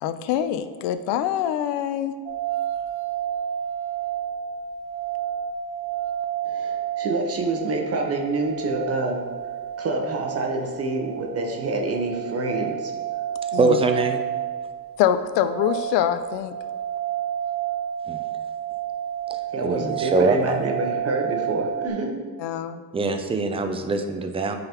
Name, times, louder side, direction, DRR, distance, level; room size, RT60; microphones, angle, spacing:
voice 1, 0.0-2.1 13.5-13.8 15.0-16.5 22.4-22.8, left 10 dB, 85° left, 11 dB, 0.5 m, -24 dB
sound 1, 2.3-21.9, right 10 dB, 70° right, 0.6 m, -30 dB
voice 2, 6.4-9.2 9.8-12.9 19.5-22.2, right 2 dB, 35° right, 2 dB, 0.8 m, -27 dB
voice 3, 13.6-14.2 18.1-18.2 19.3-20.6 22.9-24.6, right 3 dB, 15° right, 6 dB, 0.4 m, -23 dB
8.7 x 3.9 x 2.9 m, 1.5 s
cardioid pair, 120°, 40 cm